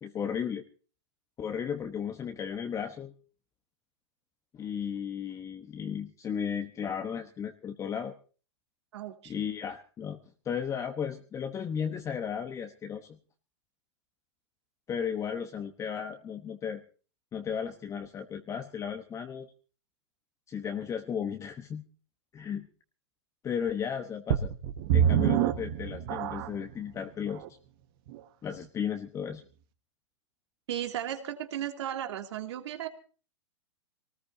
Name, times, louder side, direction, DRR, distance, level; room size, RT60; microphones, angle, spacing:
voice 1, 0.0-0.6 1.4-3.1 4.5-8.1 9.3-10.2 10.4-13.1 14.9-16.8 17.3-19.5 20.5-21.8 22.3-22.7 23.4-24.5 24.9-27.4 28.4-29.4, left 7 dB, 20° left, 6 dB, 1.1 m, -34 dB
voice 2, 8.9-9.3 30.7-32.9, right 11 dB, 70° right, 5 dB, 2.7 m, -35 dB
sound 1, 24.3-26.7 27.4-27.5 28.1-28.2, right 10 dB, 50° right, 1.6 m, -26 dB
23.0 x 19.0 x 2.8 m, 0.39 s
hypercardioid pair, 125°, 15 cm